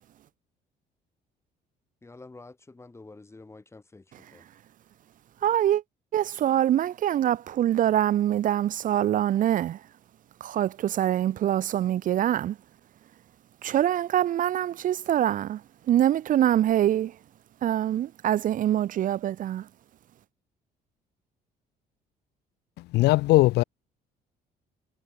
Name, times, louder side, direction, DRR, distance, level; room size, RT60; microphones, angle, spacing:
voice 1, 2.0-4.0 4.3-4.4, left 3 dB, 15° left, 4.2 m, -48 dB
voice 2, 5.4-5.8 6.1-9.8 10.4-12.5 13.6-15.6 15.9-17.1 17.6-19.6, right 11 dB, 50° right, 0.6 m, -24 dB
voice 3, 22.8-23.6, left 18 dB, 80° left, 0.6 m, -20 dB
cardioid pair, 110°, 17 cm